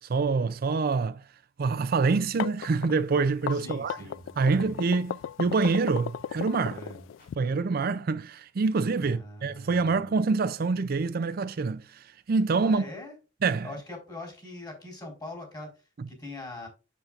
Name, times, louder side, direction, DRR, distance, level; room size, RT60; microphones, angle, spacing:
voice 1, 0.1-1.2 1.6-4.0 4.4-6.8 7.4-12.8 13.4-13.7, right 4 dB, 50° right, 0.4 m, -26 dB
sound 1, 2.1-7.4, left 8 dB, 90° left, 0.3 m, -35 dB
sound 2, 2.3-2.5 3.9-4.1 5.6-5.7 7.2-7.3, left 2 dB, 50° left, 4.2 m, -58 dB
voice 2, 3.5-4.7 6.7-7.0 9.0-10.2 12.6-13.2 13.6-16.7, left 2 dB, 20° left, 4.0 m, -43 dB
8.0 x 7.2 x 2.5 m
head